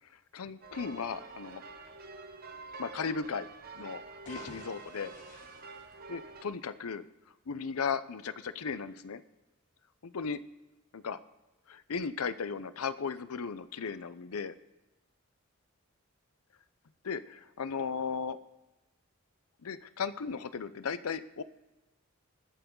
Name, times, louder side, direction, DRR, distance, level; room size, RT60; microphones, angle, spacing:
voice 1, 0.3-1.6 2.8-3.5 3.8-4.0 4.3-5.1 6.1-7.1 7.5-9.2 10.0-10.4 10.9-11.2 11.7-14.5 17.0-18.4 19.6-21.4, left 5 dB, 85° left, 14 dB, 0.6 m, -36 dB
sound 1, 0.6-6.4, right 3 dB, 45° right, 0.9 m, -47 dB
sound 2, 4.1-6.6, left 1 dB, 35° left, 2.7 m, -53 dB
20.5 x 7.0 x 3.8 m, 1.0 s
head